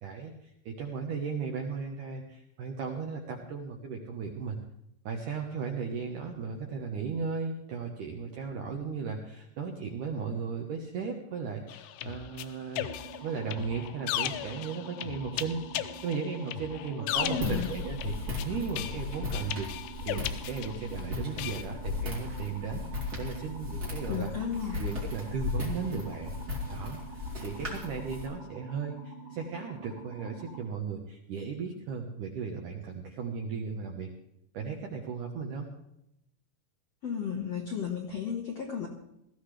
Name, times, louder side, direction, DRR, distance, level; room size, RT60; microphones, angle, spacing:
voice 1, 0.0-4.6 5.1-19.7 20.0-24.3 24.8-26.3 26.7-34.1 34.5-35.7, right 5 dB, 70° right, 1 dB, 2.0 m, -36 dB
sound 1, 11.7-21.0 21.4-21.6, left 13 dB, 80° left, 2.4 m, -37 dB
sound 2, 12.8-30.6, right 4 dB, 40° right, 8.8 m, -47 dB
voice 2, 17.0-17.7 24.1-24.9 37.0-38.9, left 7 dB, 65° left, -1 dB, 1.7 m, -34 dB
Walk footsteps, 17.1-28.2, left 3 dB, 25° right, 2.8 m, -36 dB
18.5 x 14.5 x 3.3 m, 0.81 s
omnidirectional pair, 5.1 m